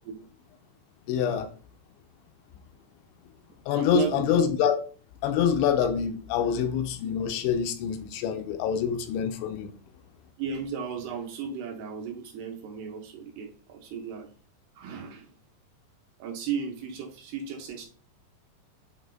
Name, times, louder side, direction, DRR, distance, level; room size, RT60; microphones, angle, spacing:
voice 1, 1.1-1.5 3.7-4.8 5.2-9.7, left 8 dB, 85° left, 2.9 m, -26 dB
voice 2, 3.7-4.3 10.4-14.3 14.8-15.3 16.2-17.9, right 7 dB, 75° right, 2.6 m, -35 dB
8.4 x 3.4 x 3.8 m
omnidirectional pair, 5.3 m